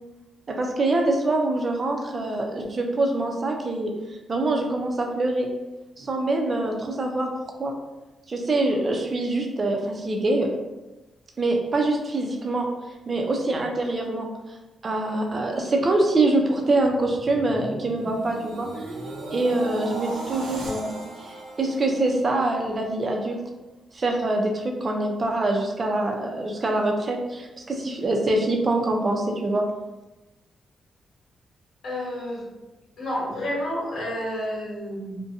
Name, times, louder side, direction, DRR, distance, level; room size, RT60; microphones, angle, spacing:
voice 1, 0.5-3.9 4.3-5.5 6.0-7.3 7.6-7.7 8.3-10.5 11.4-12.7 13.1-14.3 14.8-18.7 19.3-23.4 23.9-29.7, right 2 dB, 40° right, 2 dB, 0.5 m, -24 dB
sound 1, 16.7-22.9 23.3-23.6, right 2 dB, 90° right, 0.6 m, -38 dB
voice 2, 31.8-32.4 33.0-35.3, equal, 70° left, -5 dB, 1.0 m, -30 dB
2.5 x 2.1 x 2.7 m, 1.1 s
cardioid pair, 95°, 0 cm